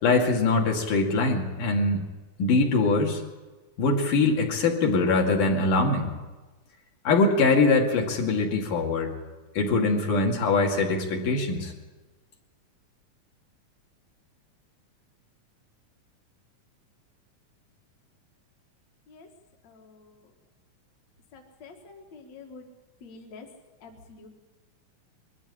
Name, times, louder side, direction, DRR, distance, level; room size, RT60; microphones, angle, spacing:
voice 1, 0.0-2.0 2.4-3.2 3.8-6.1 7.1-9.1 9.6-11.7, left 3 dB, 80° left, 0 dB, 3.9 m, -23 dB
voice 2, 21.3-21.7 22.1-22.6 23.0-23.5 23.8-23.9 24.2-24.3, left 4 dB, 60° left, 2 dB, 2.8 m, -45 dB
22.0 x 14.0 x 9.9 m, 1.2 s
omnidirectional pair, 3.7 m